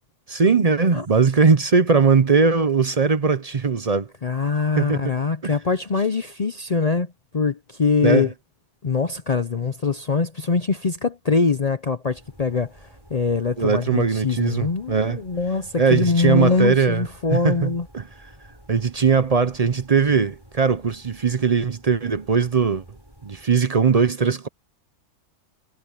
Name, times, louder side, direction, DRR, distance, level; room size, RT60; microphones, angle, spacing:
voice 1, 0.3-4.1 4.8-5.1 5.4-5.5 8.0-8.3 13.6-15.2 15.8-18.0 18.7-22.8 23.2-24.5, right 5 dB, 40° right, 0.5 m, -20 dB
voice 2, 4.2-8.3 8.8-17.9, left 4 dB, 55° left, 0.4 m, -23 dB
sound 1, 12.1-23.5, equal, 15° right, 6.8 m, -50 dB
omnidirectional pair, 1.6 m